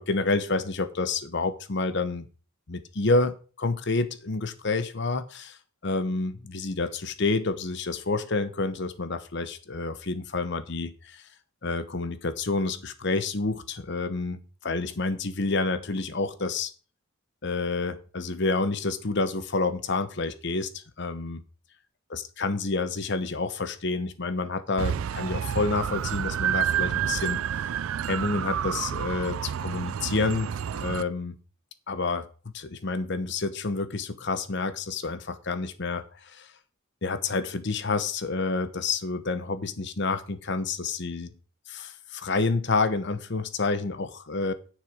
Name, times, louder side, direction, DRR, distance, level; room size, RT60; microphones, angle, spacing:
voice 1, 0.0-2.2 2.7-5.6 5.8-11.2 11.6-16.7 17.4-21.4 22.1-27.7 28.1-31.4 31.9-32.3 32.5-36.5 37.0-41.3 41.7-44.5, left 3 dB, 55° left, 11 dB, 1.0 m, -29 dB
sound 1, 24.8-31.0, right 9 dB, 80° right, 0.4 m, -29 dB
9.6 x 6.6 x 5.0 m, 0.37 s
head